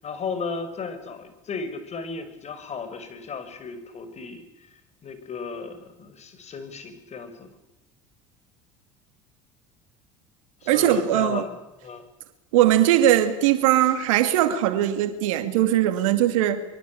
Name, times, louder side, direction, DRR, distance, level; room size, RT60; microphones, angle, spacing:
voice 1, 0.0-4.7 5.0-7.5 10.6-11.6 11.8-12.0, left 5 dB, 40° left, 5.9 m, -35 dB
voice 2, 10.7-11.4 12.5-16.6, right 12 dB, 75° right, 2.6 m, -20 dB
24.5 x 24.5 x 8.7 m
hypercardioid pair, 75°, 17 cm